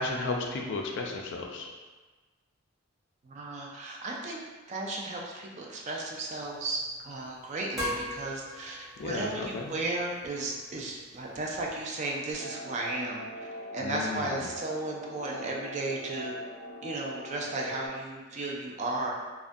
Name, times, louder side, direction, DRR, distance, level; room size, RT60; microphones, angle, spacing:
voice 1, 0.0-1.7 9.0-9.7 13.8-14.5, left 3 dB, 60° left, 1 dB, 0.3 m, -34 dB
voice 2, 3.2-4.4 4.7-13.2 13.7-16.3 16.8-19.1, right 2 dB, 35° right, -2 dB, 0.3 m, -34 dB
sound 1, 6.0-11.8, equal, ahead, 0.9 m, -42 dB
sound 2, 12.3-17.9, equal, 85° right, 0.6 m, -42 dB
2.4 x 2.1 x 2.5 m, 1.3 s
head